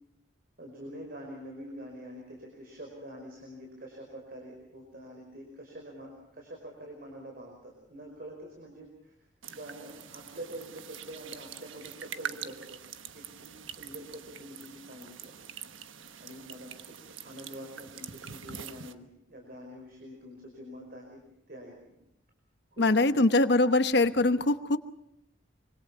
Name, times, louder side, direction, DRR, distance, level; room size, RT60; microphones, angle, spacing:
voice 1, 0.6-9.2 9.5-12.8 13.1-15.3 16.2-21.2 21.5-22.0 22.7-22.8 23.1-23.3 24.1-24.3, equal, 50° right, 1 dB, 5.1 m, -46 dB
sound 1, 9.4-18.9, right 8 dB, 90° right, 1.2 m, -44 dB
voice 2, 22.8-24.8, left 2 dB, 60° left, 10 dB, 1.0 m, -23 dB
25.5 x 24.5 x 5.6 m, 0.79 s
head